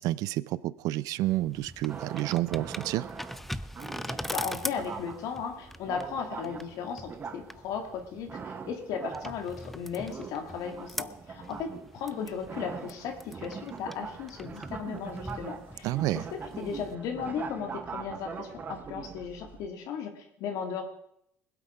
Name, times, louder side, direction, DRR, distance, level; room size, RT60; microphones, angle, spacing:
voice 1, 0.0-3.1 15.8-16.2, right 16 dB, 70° right, 20 dB, 0.5 m, -29 dB
sound 1, 1.2-16.9, left 1 dB, 5° left, 0.4 m, -42 dB
Dalang Trance Master - Manado Indonesia, 1.9-19.7, right 5 dB, 30° right, 1.0 m, -42 dB
voice 2, 4.1-20.8, left 6 dB, 65° left, 5 dB, 2.1 m, -36 dB
21.0 x 8.2 x 5.0 m, 0.74 s
cardioid pair, 135°, 6 cm